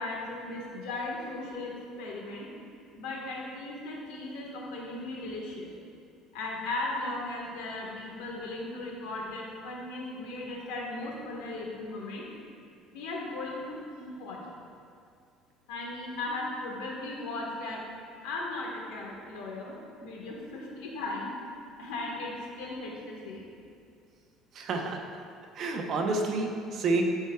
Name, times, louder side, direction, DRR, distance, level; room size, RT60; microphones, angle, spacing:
voice 1, 0.0-2.5 2.9-5.7 6.3-12.2 12.9-14.6 15.7-17.8 18.2-21.3 21.8-23.5, left 2 dB, 85° left, -2 dB, 1.5 m, -37 dB
voice 2, 24.5-25.0 25.6-27.0, right 3 dB, 50° right, 2 dB, 0.9 m, -29 dB
13.0 x 4.5 x 2.4 m, 2.3 s
cardioid pair, 130°, 0 cm